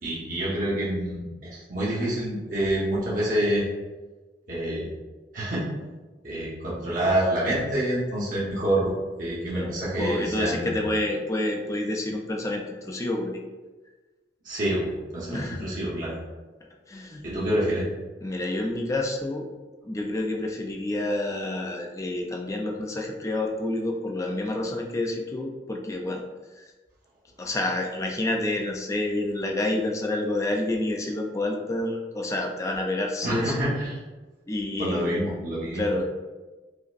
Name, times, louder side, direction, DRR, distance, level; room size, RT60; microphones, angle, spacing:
voice 1, 0.0-3.6 4.5-4.9 5.3-5.6 6.2-8.9 9.2-10.8 14.4-16.1 17.2-17.9 33.2-34.0 34.8-35.9, right 1 dB, 45° right, -8 dB, 1.0 m, -27 dB
voice 2, 9.5-13.4 15.3-15.7 16.9-17.2 18.2-19.5 19.8-26.2 27.4-33.5 34.5-35.2 35.7-36.0, left 1 dB, 15° left, 1 dB, 0.4 m, -28 dB
5.0 x 2.0 x 2.5 m, 1.3 s
head